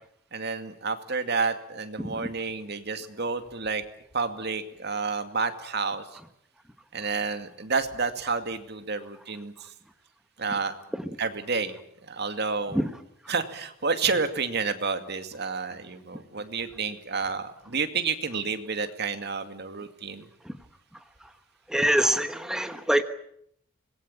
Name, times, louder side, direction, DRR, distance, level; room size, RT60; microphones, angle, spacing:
voice 1, 0.3-3.8 4.1-6.0 6.9-9.7 10.4-10.8 11.2-11.7 12.1-12.9 13.3-20.3, right 4 dB, 55° right, 2.4 m, -30 dB
voice 2, 21.7-23.0, right 1 dB, 5° right, 1.2 m, -23 dB
25.5 x 21.0 x 8.8 m
head